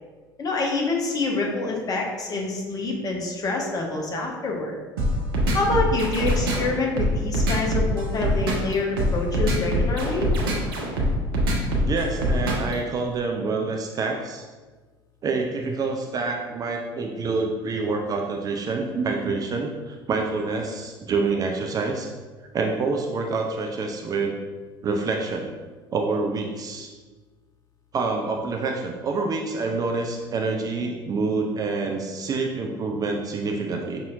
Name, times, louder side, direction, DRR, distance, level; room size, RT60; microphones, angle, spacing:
voice 1, 0.4-4.8 5.5-10.3, left 3 dB, 30° left, 0 dB, 0.8 m, -26 dB
sound 1, 5.0-12.7, equal, 70° right, 0.7 m, -23 dB
voice 2, 11.9-14.5 15.2-22.1 22.5-24.4 24.8-25.5 25.9-26.9 27.9-34.0, right 3 dB, 30° right, 2 dB, 0.4 m, -27 dB
5.4 x 2.7 x 2.5 m, 1.3 s
figure-of-eight pair, 60°, 13 cm